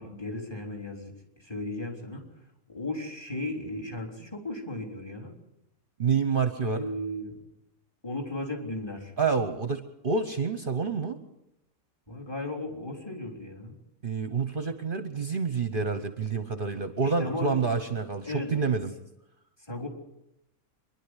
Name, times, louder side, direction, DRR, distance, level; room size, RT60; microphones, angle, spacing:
voice 1, 0.0-2.3 2.7-5.3 6.6-7.4 8.0-9.1 12.1-13.8 17.0-17.7 18.2-18.6 19.7-19.9, left 2 dB, 15° left, 2 dB, 3.9 m, -35 dB
voice 2, 6.0-6.9 9.2-11.2 14.0-18.9, right 5 dB, 40° right, 10 dB, 1.1 m, -28 dB
25.5 x 11.5 x 9.9 m, 0.86 s
omnidirectional pair, 1.4 m